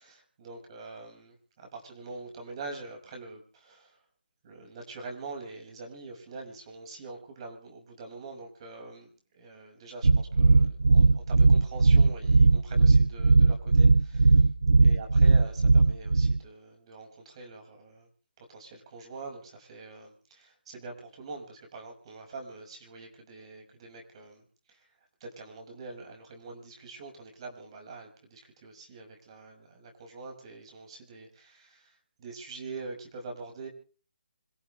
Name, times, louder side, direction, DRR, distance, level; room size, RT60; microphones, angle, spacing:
voice 1, 0.0-4.0 4.4-14.5 14.8-18.1 18.4-24.9 25.2-33.7, right 3 dB, 35° right, 3 dB, 5.9 m, -44 dB
sound 1, 10.0-16.4, right 3 dB, 85° right, 0.7 m, -19 dB
26.5 x 15.5 x 3.3 m, 0.39 s
hypercardioid pair, 160°, 5 cm